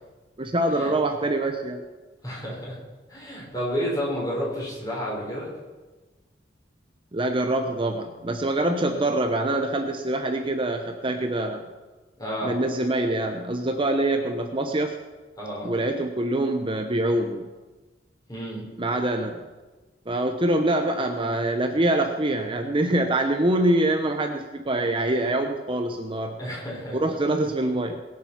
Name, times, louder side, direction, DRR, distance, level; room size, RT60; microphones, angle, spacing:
voice 1, 0.4-1.8 7.1-11.6 12.4-15.0 15.6-17.5 18.8-19.4 20.1-26.4 26.9-28.0, right 1 dB, 30° right, 5 dB, 0.9 m, -25 dB
voice 2, 2.2-2.8 3.1-5.6 12.2-12.6 15.4-15.7 18.3-18.6 26.4-27.0, equal, 20° left, -4 dB, 5.4 m, -31 dB
21.0 x 7.7 x 5.9 m, 1.2 s
head